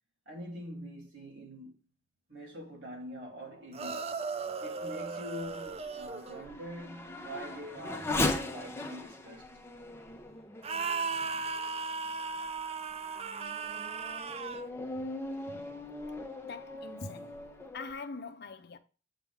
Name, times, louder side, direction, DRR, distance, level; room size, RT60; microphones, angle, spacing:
voice 1, 0.2-1.7 2.3-4.1 4.6-9.5, equal, 85° right, 3.4 m, -44 dB
sound 1, 3.7-6.5 10.6-14.7, right 4 dB, 35° right, 0.5 m, -36 dB
Race car auto racing / Accelerating revving vroom, 4.1-11.8 12.4-12.5 13.1-17.9, left 2 dB, 15° left, 1.0 m, -39 dB
voice 2, 15.5-15.8 16.4-17.5 17.7-18.8, left 4 dB, 65° left, 0.7 m, -43 dB
8.1 x 3.7 x 3.6 m
head